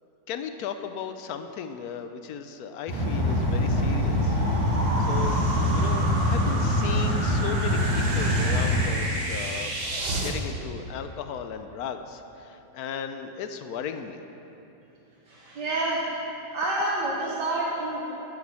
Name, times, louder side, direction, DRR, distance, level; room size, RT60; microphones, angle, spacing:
voice 1, 0.3-4.4 5.1-5.4 5.7-9.7 10.1-14.2, left 7 dB, 70° left, 8 dB, 1.0 m, -36 dB
sound 1, 2.9-8.8, equal, 20° left, 2.8 m, -24 dB
sound 2, 2.9-10.3, right 1 dB, 35° right, 1.3 m, -32 dB
voice 2, 15.3-16.1 16.5-18.0, right 2 dB, 70° right, -7 dB, 1.9 m, -28 dB
11.0 x 7.3 x 7.4 m, 2.9 s
omnidirectional pair, 2.0 m